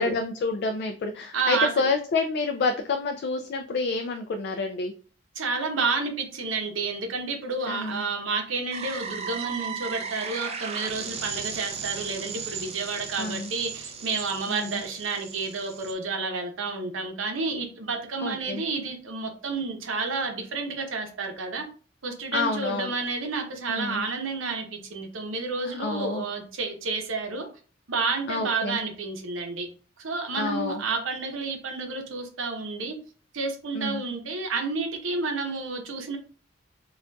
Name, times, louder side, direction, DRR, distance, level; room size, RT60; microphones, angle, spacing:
voice 1, 0.0-4.9 7.7-8.1 13.2-13.5 14.5-14.8 18.2-18.6 22.3-23.0 23.7-24.1 25.7-26.2 28.3-28.8 30.3-30.8 33.7-34.0, left 3 dB, 55° left, 0.3 m, -28 dB
voice 2, 1.3-1.7 5.4-21.6 22.0-27.5 27.9-29.7 30.0-33.0 33.3-36.2, right 4 dB, 85° right, 0.7 m, -30 dB
sound 1, 8.7-15.9, right 6 dB, 35° right, 0.4 m, -36 dB
3.8 x 2.3 x 2.2 m
head